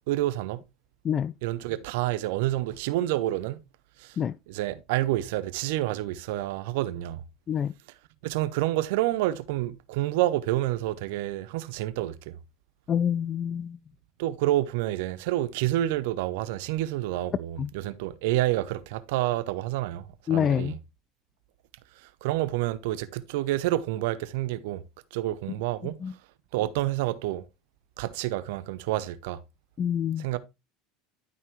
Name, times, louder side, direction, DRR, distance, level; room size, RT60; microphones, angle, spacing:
voice 1, 0.1-0.6 1.4-3.6 4.0-4.2 4.5-7.2 8.2-12.4 14.2-20.8 22.0-24.8 25.1-26.0 26.5-27.4 28.0-29.4 30.2-30.4, right 15 dB, 70° right, 0.7 m, -28 dB
voice 2, 12.9-13.8 17.6-17.7 20.3-20.7 26.0-26.1 29.8-30.2, left 9 dB, 40° left, 0.4 m, -26 dB
11.5 x 5.4 x 3.1 m
hypercardioid pair, 75°, 0 cm